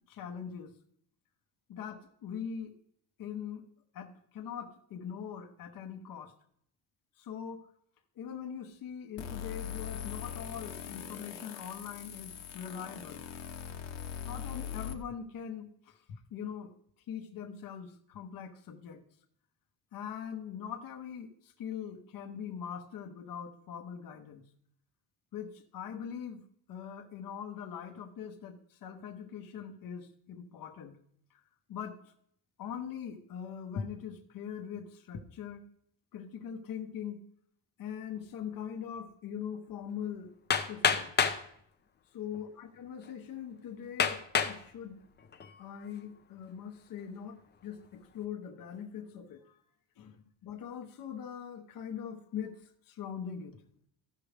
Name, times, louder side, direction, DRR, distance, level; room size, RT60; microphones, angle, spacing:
voice 1, 0.1-0.7 1.7-2.7 3.2-3.6 3.9-6.3 7.2-7.7 8.2-13.2 14.3-16.7 17.1-19.0 19.9-24.4 25.3-26.4 26.7-31.0 31.7-32.0 32.6-35.6 36.1-37.2 37.8-40.3 40.7-41.1 42.1-45.0 45.6-49.6 50.0-50.2 50.4-52.6 52.9-53.6, left 8 dB, 50° left, 4 dB, 1.0 m, -42 dB
sound 1, 9.2-14.9, left 9 dB, 85° left, 1.2 m, -41 dB
Hammer, 40.5-41.4 42.3-42.4 43.0-43.1 44.0-44.6 45.2-45.6, left 6 dB, 25° left, 0.6 m, -28 dB
15.5 x 6.1 x 3.3 m, 0.67 s
cardioid pair, 150°, 44 cm